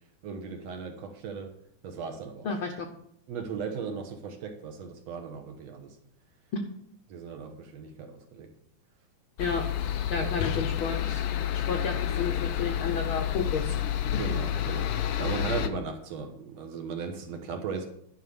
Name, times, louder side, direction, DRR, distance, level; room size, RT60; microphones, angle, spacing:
voice 1, 0.2-1.5 1.8-2.5 3.3-5.9 7.1-8.5 10.1-10.3 14.2-17.9, right 5 dB, 65° right, 4 dB, 2.1 m, -37 dB
voice 2, 2.4-2.9 6.5-6.6 9.4-9.7 10.1-11.2 11.5-13.7, left 5 dB, 65° left, 3 dB, 1.3 m, -31 dB
sound 1, 9.4-15.7, left 10 dB, 90° left, 1.2 m, -29 dB
11.5 x 5.6 x 6.8 m, 0.71 s
omnidirectional pair, 3.5 m